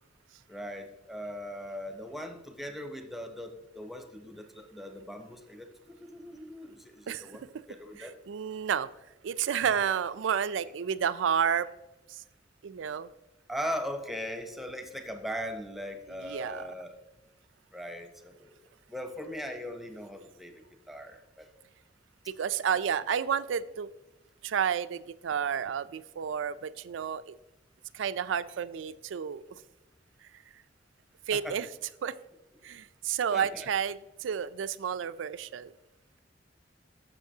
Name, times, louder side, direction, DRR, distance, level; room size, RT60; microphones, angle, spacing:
voice 1, 0.5-8.1 9.7-9.8 13.5-17.0 17.7-18.6 18.9-20.5 20.9-21.5 31.3-31.6 32.8-32.9 33.3-33.7, equal, ahead, 5 dB, 0.8 m, -39 dB
voice 2, 8.0-8.9 9.2-11.7 12.1-12.2 12.6-13.1 16.2-16.7 22.4-23.9 24.4-27.3 27.9-29.5 31.3-31.7 32.0-32.1 32.6-35.7, right 8 dB, 90° right, 16 dB, 0.4 m, -31 dB
13.5 x 6.5 x 2.8 m, 0.98 s
head